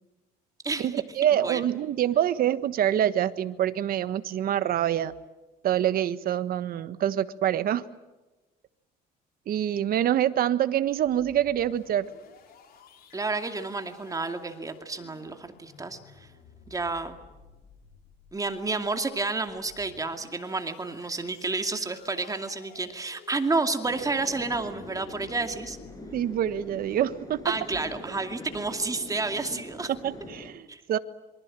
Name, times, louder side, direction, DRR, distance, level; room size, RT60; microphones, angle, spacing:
voice 1, 0.8-5.1 5.6-7.8 9.5-12.1 26.1-27.6 30.0-31.0, right 11 dB, 60° right, 12 dB, 1.4 m, -26 dB
sound 1, 10.8-27.6, left 6 dB, 65° left, 5.6 m, -54 dB
voice 2, 13.1-16.3 16.7-17.2 18.3-25.8 27.4-29.9 30.7-30.8, right 3 dB, 20° right, 6 dB, 2.4 m, -30 dB
sound 2, 23.9-30.5, left 1 dB, 20° left, 7.9 m, -43 dB
27.0 x 24.5 x 7.6 m, 1.1 s
cardioid pair, 110°, 17 cm